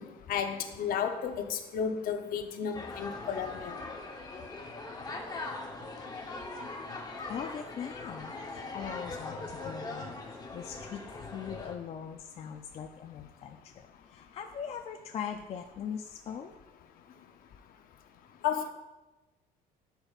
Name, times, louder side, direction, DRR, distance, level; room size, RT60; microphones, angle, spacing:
voice 1, 0.0-3.8 18.4-18.7, left 7 dB, 60° left, 6 dB, 0.7 m, -33 dB
sound 1, 2.7-11.8, left 2 dB, 25° left, 0.8 m, -41 dB
voice 2, 7.3-16.5, left 7 dB, 40° left, 4 dB, 0.4 m, -41 dB
11.0 x 5.2 x 2.4 m, 1.1 s
cardioid pair, 140°, 17 cm